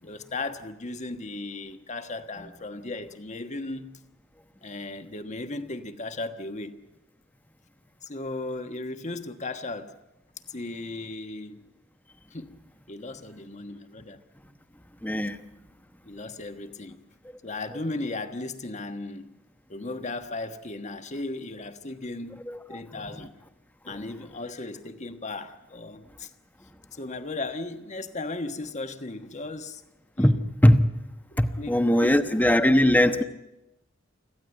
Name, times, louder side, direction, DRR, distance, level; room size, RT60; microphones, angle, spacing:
voice 1, 0.0-4.0 4.6-6.7 8.0-9.9 10.5-11.6 12.3-12.6 12.9-14.2 16.0-17.0 17.4-19.3 19.7-22.4 22.7-23.3 23.8-26.3 26.9-29.8 30.2-30.4 31.3-32.4, left 2 dB, 35° left, 8 dB, 1.4 m, -36 dB
voice 2, 15.0-15.4 22.5-22.6 30.2-30.4 30.6-30.8 31.4-33.2, left 1 dB, 10° left, 9 dB, 1.0 m, -20 dB
25.5 x 15.5 x 9.1 m, 0.97 s
head